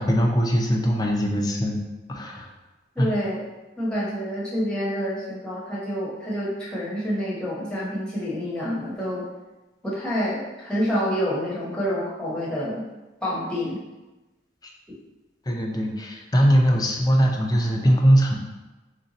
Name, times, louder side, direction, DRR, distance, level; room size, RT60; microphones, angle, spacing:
voice 1, 0.0-1.8 2.1-2.5 3.0-3.1 15.5-18.4, equal, 20° left, 1 dB, 0.5 m, -21 dB
voice 2, 2.9-3.4 3.8-9.3 9.8-12.9 13.2-13.8, equal, 5° left, -7 dB, 0.9 m, -27 dB
3.3 x 2.8 x 3.9 m, 1.1 s
head